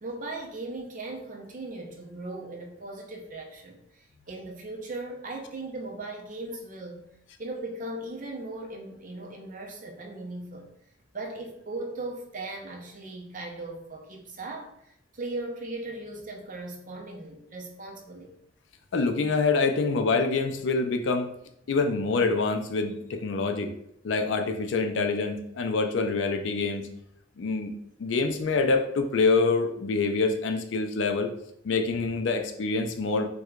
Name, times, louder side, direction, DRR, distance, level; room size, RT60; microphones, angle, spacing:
voice 1, 0.0-7.0 7.4-10.7 11.1-14.7 15.1-18.3, right 2 dB, 45° right, 1 dB, 0.6 m, -38 dB
voice 2, 18.9-21.3 21.7-23.7 24.0-26.9 27.4-27.7 28.0-31.3 31.6-33.3, left 4 dB, 70° left, 6 dB, 0.4 m, -26 dB
4.5 x 2.2 x 2.3 m, 0.76 s
head